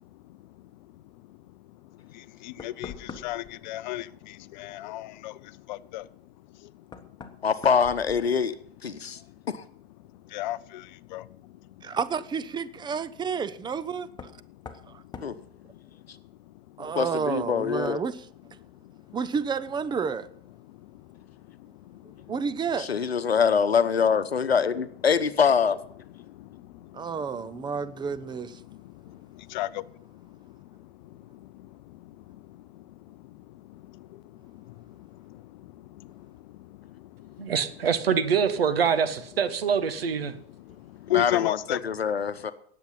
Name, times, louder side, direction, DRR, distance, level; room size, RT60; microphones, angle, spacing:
voice 1, 0.1-6.1 6.5-6.7 7.0-7.1 7.4-7.5 9.0-9.4 10.2-11.9 14.7-15.5 15.8-15.9 16.5-16.8 18.7-19.0 20.6-22.3 26.4-27.3 27.5-27.6 28.7-37.6 40.3-41.8, left 15 dB, 50° left, 0.6 m, -38 dB
Knock, 2.6-3.6 6.0-6.1 6.9-8.7 9.0-9.6 11.3-11.4 14.1-14.4 14.7-14.9 15.1-15.4, left 5 dB, 15° left, 1.3 m, -43 dB
voice 2, 7.4-8.5 8.8-9.2 9.5-9.6 15.2-15.3 16.8-18.0 22.8-25.8 41.1-42.5, left 6 dB, 80° left, 0.9 m, -24 dB
voice 3, 11.8-14.3 14.9-15.0 16.8-18.3 19.1-20.3 22.3-22.9 26.9-28.6, right 6 dB, 15° right, 0.6 m, -30 dB
voice 4, 37.4-40.4, right 7 dB, 70° right, 1.3 m, -25 dB
18.5 x 7.5 x 5.6 m
figure-of-eight pair, 85°, 31 cm